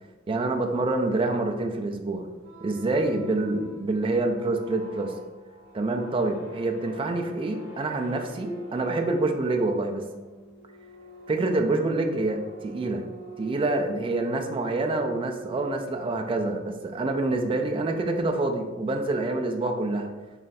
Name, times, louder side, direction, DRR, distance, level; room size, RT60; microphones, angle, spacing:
voice 1, 0.3-2.3 2.6-5.1 5.7-10.1 11.3-13.1 13.4-20.1, right 2 dB, 25° right, 4 dB, 0.3 m, -26 dB
sound 1, 2.4-16.1, right 4 dB, 60° right, 0.7 m, -46 dB
3.2 x 2.4 x 4.1 m, 1.2 s
head